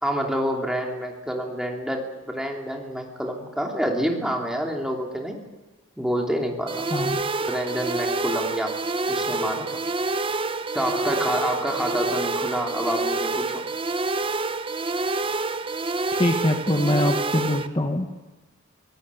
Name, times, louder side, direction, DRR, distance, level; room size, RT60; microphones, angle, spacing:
voice 1, 0.0-5.4 6.0-6.9 7.4-8.7 9.1-9.8 10.7-13.6, equal, 5° right, 1 dB, 3.0 m, -28 dB
sound 1, 6.7-17.7, right 3 dB, 25° right, 0.7 m, -27 dB
voice 2, 16.2-18.1, left 1 dB, 25° left, 4 dB, 1.2 m, -23 dB
24.0 x 17.5 x 8.4 m, 1.2 s
head